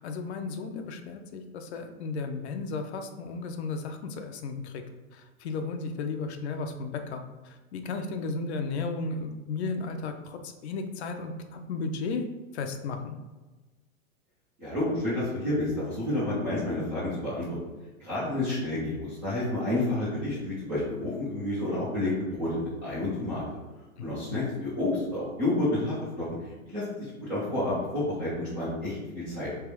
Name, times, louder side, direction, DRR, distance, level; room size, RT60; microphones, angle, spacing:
voice 1, 0.0-4.8 5.1-7.2 7.7-12.2 12.5-13.2 24.0-24.4, left 4 dB, 50° left, 6 dB, 0.6 m, -34 dB
voice 2, 14.6-17.6 18.0-23.4 24.0-26.3 26.7-26.8 27.3-29.5, left 1 dB, 10° right, -11 dB, 0.3 m, -30 dB
3.5 x 3.2 x 4.7 m, 1.2 s
hypercardioid pair, 140°, 41 cm